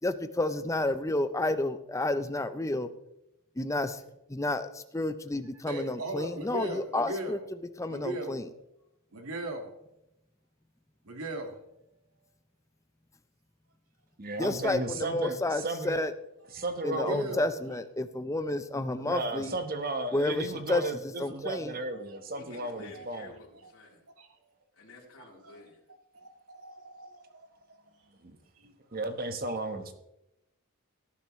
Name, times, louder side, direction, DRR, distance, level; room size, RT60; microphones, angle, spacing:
voice 1, 0.0-2.9 3.6-4.0 4.3-7.4 7.8-8.5 14.4-16.1 16.8-19.5 20.1-21.8, left 2 dB, 15° left, 0.6 m, -30 dB
voice 2, 5.7-7.5 7.9-8.4 9.1-9.7 11.0-11.6 16.5-16.6 16.9-17.5 21.9-22.2 22.6-23.1 23.6-23.7 24.2-24.4 25.4-25.6 26.1-28.0 28.6-28.8, right 1 dB, 75° right, 1.8 m, -39 dB
voice 3, 14.2-16.0 16.5-17.3 19.1-23.3 28.2-28.4 28.9-29.9, right 2 dB, 40° right, 1.2 m, -34 dB
voice 4, 22.4-24.0 24.7-25.8, left 2 dB, 70° left, 3.7 m, -51 dB
18.0 x 10.5 x 3.2 m
head